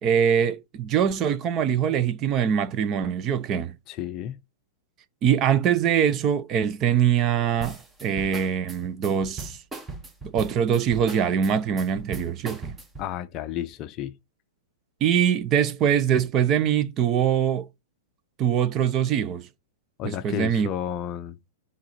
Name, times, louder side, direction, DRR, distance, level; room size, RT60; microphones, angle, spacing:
voice 1, 0.0-3.7 5.2-9.6 10.3-12.7 15.0-17.7 18.4-19.5 20.0-20.7, right 8 dB, 25° right, 0.5 m, -23 dB
voice 2, 3.9-4.4 13.0-14.1 20.0-21.4, left 11 dB, 30° left, 0.6 m, -32 dB
sound 1, 7.6-13.1, right 3 dB, 10° right, 1.0 m, -38 dB
7.9 x 4.0 x 4.2 m
hypercardioid pair, 160°, 0 cm